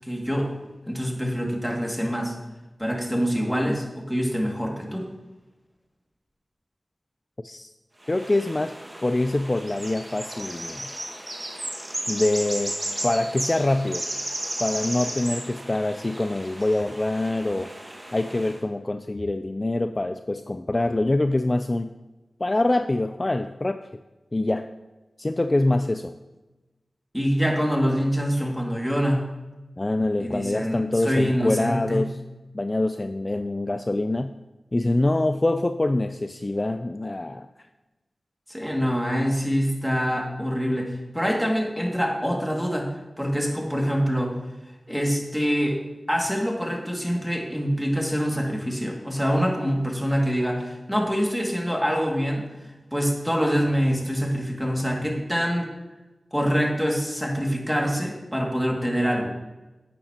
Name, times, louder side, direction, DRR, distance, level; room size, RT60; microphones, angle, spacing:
voice 1, 0.0-0.5 0.8-2.3 2.8-5.1 27.1-29.3 30.2-32.0 38.5-42.9 43.2-44.4 44.9-45.8 46.1-52.4 52.9-55.7 56.3-59.3, equal, ahead, -1 dB, 2.3 m, -25 dB
sound 1, 8.0-18.6, right 1 dB, 35° right, 1.8 m, -34 dB
voice 2, 8.1-8.8 9.0-10.9 12.1-12.7 13.0-14.1 14.6-17.7 18.1-21.9 22.4-23.8 24.3-24.7 25.2-26.1 29.8-32.2 32.5-34.3 34.7-37.5, left 2 dB, 35° left, 9 dB, 0.4 m, -25 dB
11.5 x 8.8 x 2.9 m, 1.1 s
cardioid pair, 45°, 0 cm